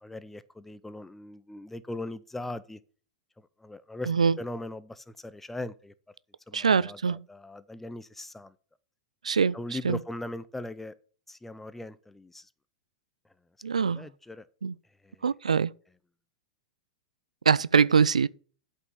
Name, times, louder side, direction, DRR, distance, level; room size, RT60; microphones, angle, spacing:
voice 1, 0.0-2.8 3.6-4.1 4.4-5.9 6.5-8.5 9.5-10.9 11.3-12.5 13.7-14.5 15.0-15.2, left 1 dB, 5° left, 0.7 m, -39 dB
voice 2, 4.1-4.4 6.5-7.2 9.2-9.6 9.8-10.0 13.6-14.0 14.6-14.8 15.2-15.7 17.5-18.3, right 6 dB, 90° right, 0.3 m, -23 dB
8.2 x 5.5 x 6.9 m
hypercardioid pair, 110°, 4 cm